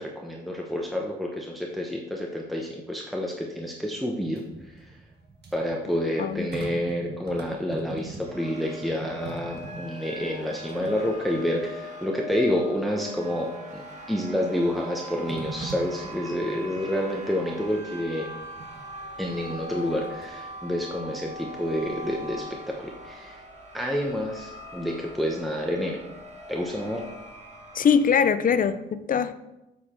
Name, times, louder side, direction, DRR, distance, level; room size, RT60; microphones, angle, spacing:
voice 1, 0.0-4.9 5.5-18.3 19.2-23.4 23.7-26.0 26.5-27.0, equal, ahead, -1 dB, 1.0 m, -29 dB
sound 1, 4.2-8.5 8.8-11.6 12.1-12.2 13.9-14.3 15.3-16.8 18.4-18.8 19.8-20.5 20.9-21.9 22.1-22.2, right 2 dB, 55° right, 1.6 m, -41 dB
sound 2, 8.2-28.1, equal, 35° right, 1.7 m, -41 dB
voice 2, 27.7-29.3, left 7 dB, 45° left, 12 dB, 0.5 m, -22 dB
7.7 x 6.6 x 4.5 m, 0.95 s
cardioid pair, 90°, 20 cm